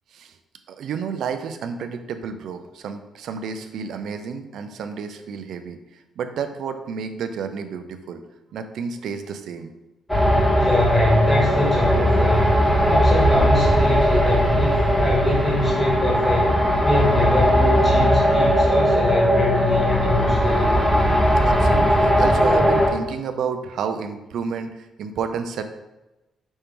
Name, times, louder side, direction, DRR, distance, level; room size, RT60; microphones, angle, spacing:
voice 1, 0.7-5.8 6.2-8.2 8.5-9.7 21.4-25.6, right 6 dB, 70° right, 8 dB, 0.4 m, -30 dB
sound 1, 10.1-22.9, equal, 5° left, 1.2 m, -18 dB
voice 2, 10.5-16.6 16.8-20.7, left 2 dB, 30° left, -4 dB, 1.5 m, -24 dB
5.3 x 2.9 x 3.5 m, 1.0 s
cardioid pair, 90°, 0 cm